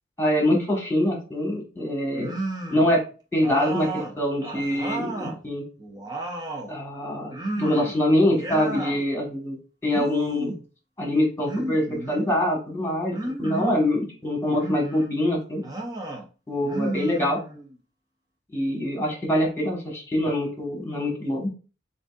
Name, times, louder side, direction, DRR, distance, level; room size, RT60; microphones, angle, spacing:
voice 1, 0.2-2.3 2.7-3.0 3.3-5.6 6.7-9.6 9.8-10.5 11.0-15.6 16.5-17.4 18.5-21.5, left 1 dB, 15° left, 0 dB, 1.5 m, -24 dB
sound 1, 2.1-2.9 3.4-5.4 5.8-6.7 7.3-8.0 8.3-9.0 9.8-10.6 11.5-12.4 13.1-13.8 14.5-15.1 15.6-16.2 16.6-17.7, right 2 dB, 20° right, 0.7 m, -32 dB
7.2 x 2.7 x 2.5 m, 0.35 s
head